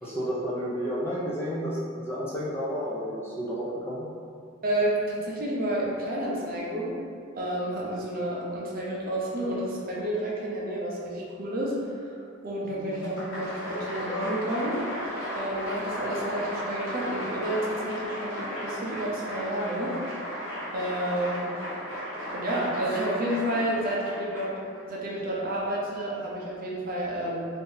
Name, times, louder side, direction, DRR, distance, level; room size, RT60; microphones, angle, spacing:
voice 1, 0.0-4.1, equal, 10° left, -7 dB, 0.5 m, -31 dB
voice 2, 4.6-6.9 7.3-12.2 12.4-14.8 15.3-19.9 20.7-21.4 22.3-24.6 24.9-27.5, right 1 dB, 45° right, -5 dB, 0.6 m, -30 dB
Applause, 12.9-24.8, equal, 80° left, 1.1 m, -35 dB
2.6 x 2.6 x 3.9 m, 2.3 s
head